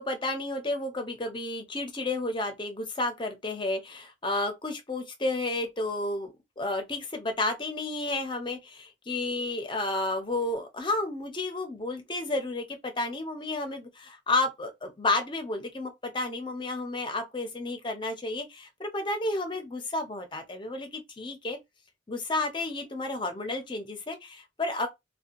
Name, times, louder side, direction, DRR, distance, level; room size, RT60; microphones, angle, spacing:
voice 1, 0.0-21.6 22.1-24.9, left 2 dB, 25° left, 0.6 m, -31 dB
2.7 x 2.2 x 2.6 m
head